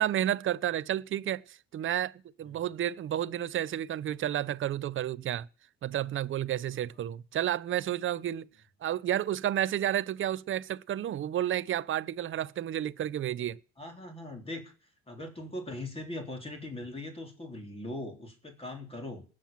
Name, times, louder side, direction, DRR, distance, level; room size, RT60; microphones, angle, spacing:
voice 1, 0.0-5.5 5.8-8.5 8.8-13.6, right 11 dB, 40° right, 0.7 m, -31 dB
voice 2, 13.8-14.7 15.1-19.3, left 1 dB, 20° left, 3.8 m, -40 dB
19.0 x 7.6 x 7.4 m
cardioid pair, 105°, 31 cm